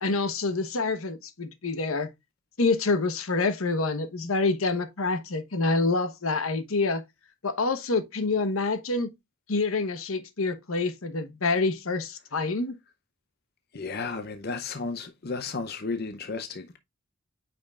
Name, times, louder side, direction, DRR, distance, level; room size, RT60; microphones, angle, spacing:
voice 1, 0.0-2.1 2.6-7.0 7.4-9.1 9.5-12.8, left 3 dB, 75° left, 1.1 m, -27 dB
voice 2, 13.7-16.8, left 4 dB, 45° left, 0.6 m, -33 dB
9.0 x 5.2 x 2.4 m
head